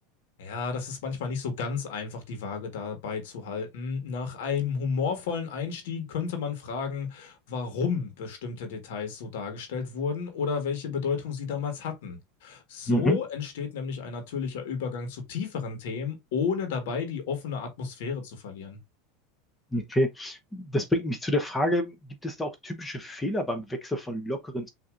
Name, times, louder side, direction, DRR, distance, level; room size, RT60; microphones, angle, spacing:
voice 1, 0.4-18.8, left 5 dB, 75° left, 1.4 m, -32 dB
voice 2, 12.9-13.2 19.7-22.0 22.2-24.7, equal, 10° left, 0.9 m, -28 dB
6.2 x 2.9 x 2.4 m
supercardioid pair, 115°, 0 cm